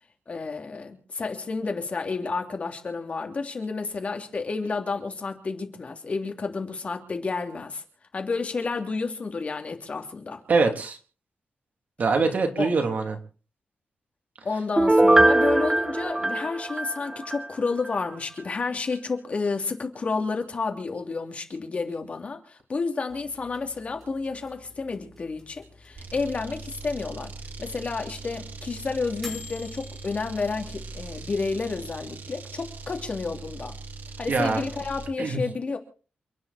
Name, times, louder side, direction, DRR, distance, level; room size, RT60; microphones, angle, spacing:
voice 1, 0.3-7.8 8.1-10.4 12.6-12.7 14.4-27.3 27.6-33.7 34.2-35.8, left 4 dB, 40° left, 2.9 m, -30 dB
voice 2, 10.5-11.0 12.0-13.2 34.3-34.6 35.2-35.4, right 4 dB, 55° right, 3.1 m, -23 dB
Piano, 14.8-17.5 17.8-17.9, right 1 dB, 15° right, 0.8 m, -21 dB
sound 1, 23.1-32.2, left 3 dB, 10° left, 5.1 m, -49 dB
sound 2, 26.0-35.2, right 4 dB, 70° right, 2.0 m, -41 dB
29.0 x 9.7 x 4.3 m
wide cardioid pair, 120°, 3 cm